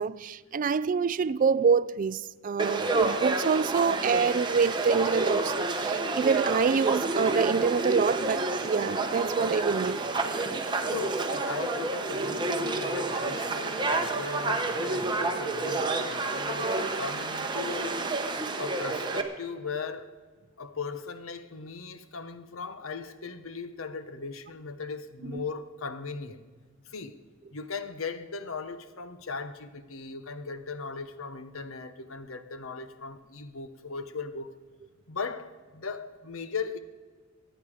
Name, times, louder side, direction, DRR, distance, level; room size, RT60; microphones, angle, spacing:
voice 1, 0.0-10.0 25.3-25.4, right 5 dB, 40° right, 0.3 m, -26 dB
Conversation / Crowd, 2.6-19.2, right 3 dB, 20° right, 1.0 m, -29 dB
voice 2, 10.8-17.9 18.6-20.1 20.6-26.4 26.9-27.2 27.5-34.5 35.1-36.8, left 4 dB, 80° left, 0.9 m, -38 dB
24.0 x 9.2 x 4.9 m
head